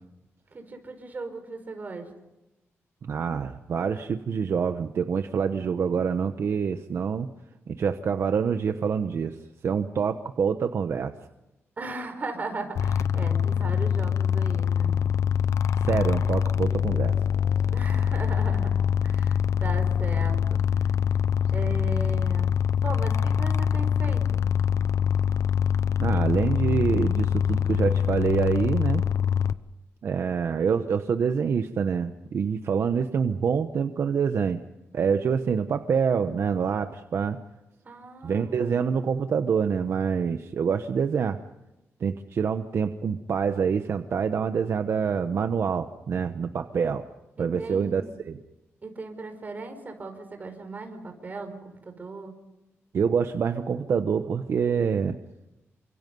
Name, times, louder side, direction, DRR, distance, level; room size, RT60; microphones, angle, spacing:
voice 1, 0.5-2.1 11.8-15.0 17.7-20.6 21.5-22.5 22.8-24.5 37.8-38.9 47.4-48.2 48.8-52.3, right 3 dB, 35° right, 6 dB, 4.9 m, -37 dB
voice 2, 3.0-7.3 7.7-9.4 9.6-11.1 15.7-17.2 26.0-29.0 30.0-34.6 34.9-37.4 38.2-41.4 42.0-47.0 47.4-48.4 52.9-55.2, right 6 dB, 60° right, 8 dB, 1.0 m, -26 dB
sound 1, 12.8-29.5, left 8 dB, 85° left, 0.8 m, -24 dB
29.0 x 26.0 x 5.4 m, 0.95 s
wide cardioid pair, 150°, 5 cm